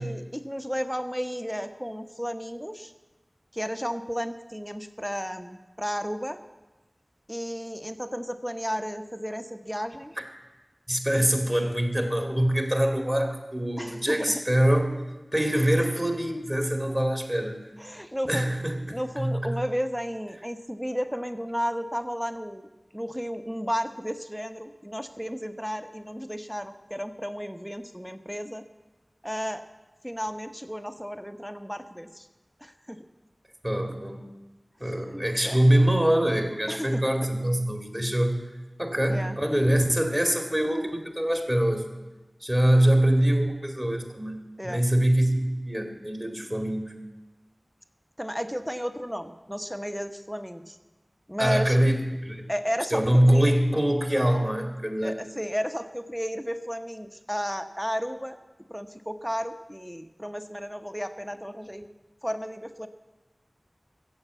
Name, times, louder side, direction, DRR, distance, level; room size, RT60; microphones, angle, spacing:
voice 1, 0.0-2.9 3.5-6.4 7.3-10.1 13.8-14.3 17.8-18.5 18.9-22.7 22.9-28.6 29.2-29.6 30.0-32.3 32.6-33.1 35.0-35.6 36.7-37.0 39.1-39.4 44.6-44.8 48.2-50.8 51.3-51.8 52.5-53.5 55.0-58.4 58.7-61.9 62.2-62.9, equal, ahead, 8 dB, 0.9 m, -33 dB
voice 2, 10.9-14.9 15.3-17.6 18.3-19.6 33.6-34.3 34.8-38.4 38.8-41.9 42.4-44.4 44.6-46.9 51.4-52.5 52.9-55.2, right 1 dB, 20° right, 4 dB, 2.2 m, -24 dB
15.0 x 7.3 x 8.2 m, 1.1 s
wide cardioid pair, 45°, 0 cm